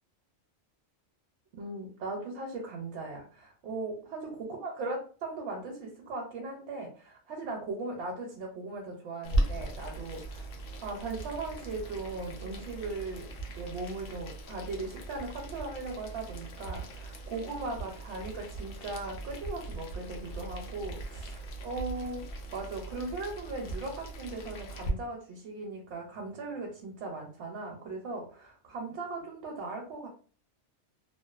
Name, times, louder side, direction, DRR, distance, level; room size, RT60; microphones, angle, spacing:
voice 1, 1.5-10.5 10.8-13.3 13.6-22.2 22.5-30.1, right 3 dB, 75° right, 0 dB, 0.9 m, -38 dB
Boiling, 9.2-24.9, right 1 dB, 60° left, 0.7 m, -38 dB
2.5 x 2.1 x 2.3 m, 0.41 s
omnidirectional pair, 1.2 m